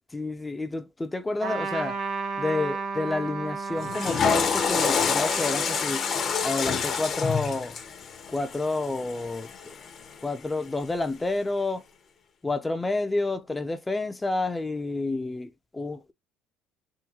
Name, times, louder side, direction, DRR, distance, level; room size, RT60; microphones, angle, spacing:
voice 1, 0.1-2.0 2.4-6.1 6.4-7.8 8.3-9.8 10.2-11.8 12.4-16.1, left 2 dB, 15° left, 0.4 m, -29 dB
Trumpet, 1.4-7.3, right 4 dB, 60° right, 1.3 m, -34 dB
Water / Toilet flush, 3.8-10.0, left 6 dB, 45° left, 0.7 m, -27 dB
3.7 x 2.2 x 2.8 m
supercardioid pair, 90°, 0 cm